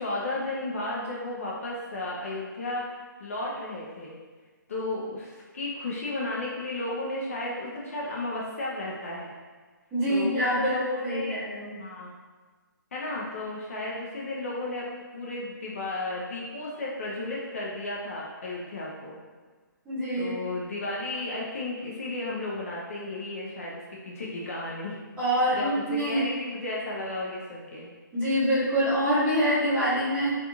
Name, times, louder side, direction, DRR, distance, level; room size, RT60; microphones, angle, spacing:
voice 1, 0.0-2.9 3.2-4.2 4.7-9.3 10.1-11.4 11.7-12.1 12.9-19.2 20.1-24.9 25.5-27.9, left 2 dB, 45° left, -4 dB, 0.4 m, -34 dB
voice 2, 9.9-10.7 11.0-11.7 19.8-20.3 25.2-26.3 28.1-30.3, equal, 10° right, -14 dB, 0.7 m, -25 dB
2.4 x 2.3 x 2.9 m, 1.4 s
hypercardioid pair, 170°, 11 cm